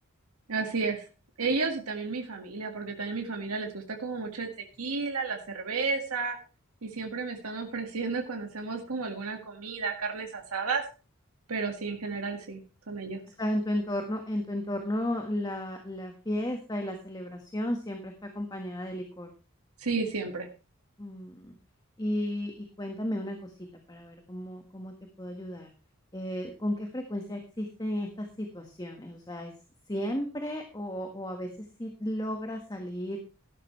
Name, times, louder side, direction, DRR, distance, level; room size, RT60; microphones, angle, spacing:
voice 1, 0.5-1.1 1.4-4.5 4.8-6.4 6.8-10.8 11.5-13.2 19.8-20.5, right 4 dB, 90° right, 3 dB, 1.9 m, -32 dB
voice 2, 13.4-19.3 21.0-21.6 22.0-23.5 23.9-25.7 26.1-29.5 29.9-33.2, left 1 dB, 20° left, 4 dB, 1.5 m, -34 dB
13.5 x 11.5 x 3.2 m, 0.32 s
head